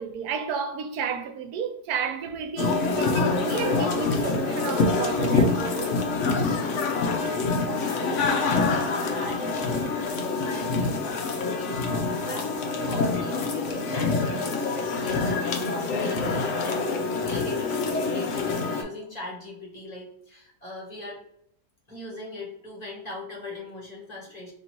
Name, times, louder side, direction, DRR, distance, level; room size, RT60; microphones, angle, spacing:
voice 1, 0.0-5.9, right 6 dB, 70° right, 1.0 m, -31 dB
sound 1, 2.6-18.8, left 3 dB, 60° left, 0.8 m, -26 dB
voice 2, 7.7-10.0 10.3-16.9 17.2-21.2 21.9-24.5, left 2 dB, 25° left, 1.3 m, -40 dB
2.9 x 2.7 x 4.3 m
omnidirectional pair, 1.8 m